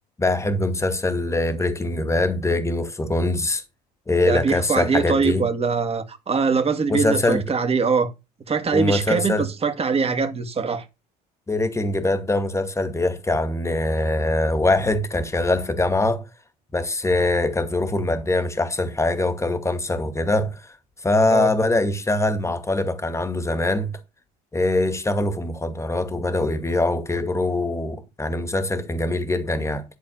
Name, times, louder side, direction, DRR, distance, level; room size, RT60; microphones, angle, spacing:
voice 1, 0.2-3.6 4.1-5.5 6.9-7.4 8.7-9.5 11.5-16.2 16.7-20.6 21.0-23.9 24.5-29.8, left 2 dB, 15° left, 2.2 m, -23 dB
voice 2, 4.3-8.1 8.5-10.9 21.3-21.5, right 5 dB, 30° right, 2.1 m, -22 dB
11.5 x 4.2 x 7.3 m
hypercardioid pair, 75°, 20 cm